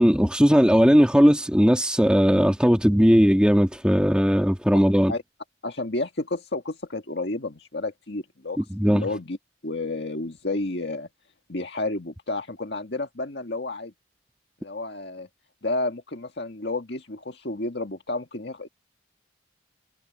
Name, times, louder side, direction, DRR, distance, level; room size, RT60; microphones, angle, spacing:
voice 1, 0.0-5.1 8.7-9.1, equal, 5° right, 1.7 m, -18 dB
voice 2, 5.6-9.4 9.6-11.1 11.5-13.9 14.6-15.3 15.6-18.7, left 2 dB, 65° left, 1.9 m, -31 dB
head